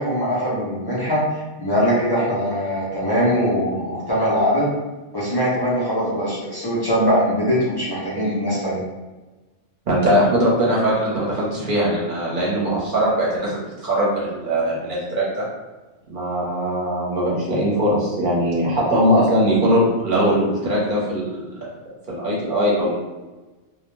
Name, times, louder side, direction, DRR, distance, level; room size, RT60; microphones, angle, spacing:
voice 1, 0.0-4.7 5.1-8.8, equal, 35° left, -8 dB, 0.4 m, -21 dB
voice 2, 9.9-15.5 16.1-21.7 22.1-22.9, equal, 45° right, -5 dB, 0.9 m, -20 dB
2.3 x 2.1 x 3.0 m, 1.2 s
omnidirectional pair, 1.3 m